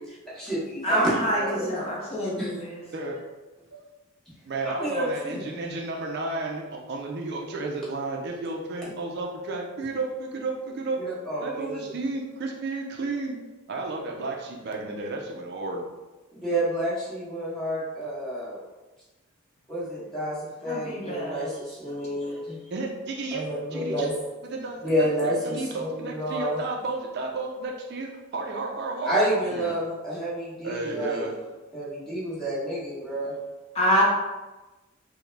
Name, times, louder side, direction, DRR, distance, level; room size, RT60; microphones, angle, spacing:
voice 1, 0.0-2.6 4.6-5.5 11.0-11.9 16.3-18.6 19.7-22.6 23.3-24.2 24.8-26.6 29.0-31.2 31.7-33.3, right 1 dB, 5° left, -9 dB, 1.1 m, -29 dB
voice 2, 0.8-2.8 20.7-21.4 33.8-34.0, equal, 30° left, -4 dB, 0.6 m, -26 dB
voice 3, 4.5-11.0 11.4-13.4 13.7-15.8 22.7-24.1 24.4-29.2 29.5-29.7 30.6-31.3, right 3 dB, 50° right, 0 dB, 0.4 m, -32 dB
3.5 x 2.1 x 3.2 m, 1.1 s
head